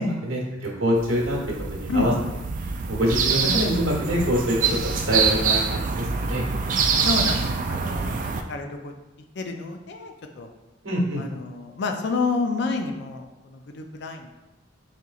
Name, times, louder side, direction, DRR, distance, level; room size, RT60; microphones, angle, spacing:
voice 1, 0.3-2.1 2.9-4.6 4.8-6.4 10.8-11.2, equal, 80° right, -3 dB, 1.1 m, -25 dB
sound 1, 1.0-8.4, right 5 dB, 40° right, 0.3 m, -25 dB
voice 2, 1.9-2.2 7.0-8.9 9.4-10.5 11.2-14.3, left 3 dB, 60° left, 4 dB, 0.4 m, -29 dB
4.3 x 3.8 x 2.4 m, 1.0 s
head